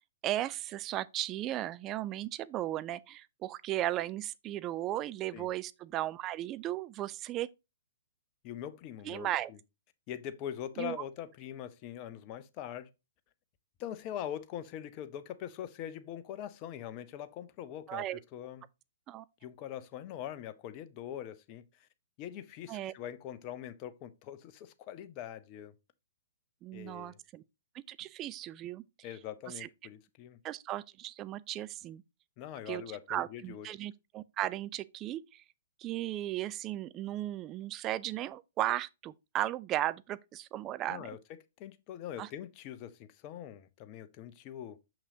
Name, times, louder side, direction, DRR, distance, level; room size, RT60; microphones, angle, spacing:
voice 1, 0.2-7.5 9.0-9.5 10.8-11.0 17.9-18.2 19.1-19.2 22.7-22.9 26.6-27.4 27.9-28.8 29.6-29.7 30.4-32.0 32.7-32.8 33.1-35.4 35.8-41.1 42.2-42.3, right 13 dB, 25° right, 0.4 m, -36 dB
voice 2, 8.4-9.6 10.1-12.9 13.8-18.1 18.3-18.6 19.4-21.6 22.2-25.7 26.7-27.2 29.0-30.4 32.4-33.7 40.9-41.2 41.6-44.8, left 10 dB, 35° left, 0.8 m, -42 dB
6.3 x 5.9 x 2.8 m
figure-of-eight pair, 120°, 0 cm